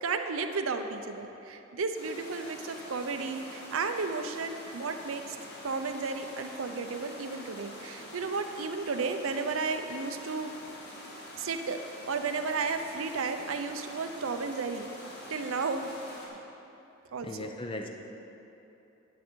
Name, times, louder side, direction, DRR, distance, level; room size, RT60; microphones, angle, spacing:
voice 1, 0.0-5.4 5.6-10.5 11.4-11.8 12.1-14.9 15.3-15.9 17.1-17.5, right 4 dB, 80° right, 6 dB, 0.6 m, -33 dB
sound 1, 1.9-16.3, equal, 50° left, 1.7 m, -46 dB
voice 2, 17.2-17.9, left 1 dB, 25° left, 3 dB, 0.5 m, -37 dB
9.4 x 9.1 x 4.5 m, 2.9 s
head